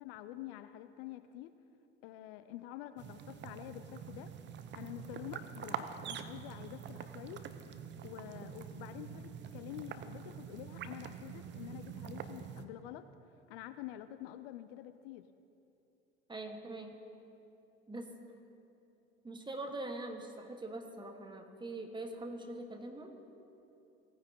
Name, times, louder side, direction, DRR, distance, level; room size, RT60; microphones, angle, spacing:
voice 1, 0.0-1.5 2.0-4.3 4.7-7.4 8.0-13.1 13.5-15.2, left 13 dB, 60° left, 11 dB, 0.5 m, -47 dB
sound 1, 3.0-12.6, right 8 dB, 35° right, 0.6 m, -45 dB
voice 2, 16.3-17.0 17.9-18.1 19.2-23.1, right 2 dB, 15° right, 4 dB, 1.3 m, -43 dB
17.5 x 9.4 x 2.8 m, 2.8 s
hypercardioid pair, 70°, 34 cm